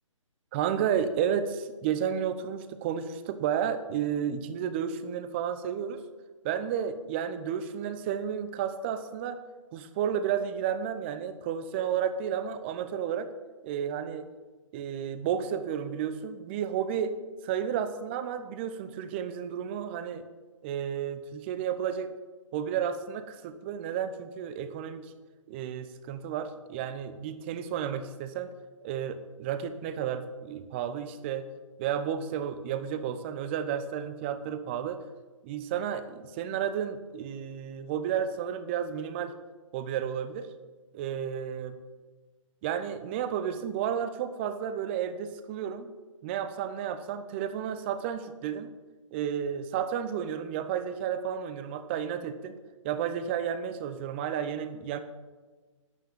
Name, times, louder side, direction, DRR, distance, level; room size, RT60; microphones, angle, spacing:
voice 1, 0.5-6.0 6.4-9.4 9.7-13.3 13.6-14.3 14.7-17.2 17.4-20.2 20.6-22.1 22.5-25.1 25.5-28.5 28.8-31.5 31.8-35.0 35.4-39.3 39.7-40.5 40.9-41.8 42.6-45.9 46.2-48.7 49.1-52.5 52.8-55.0, right 8 dB, 20° right, 11 dB, 0.7 m, -32 dB
11.5 x 9.1 x 7.1 m, 1.3 s
figure-of-eight pair, 135°, 17 cm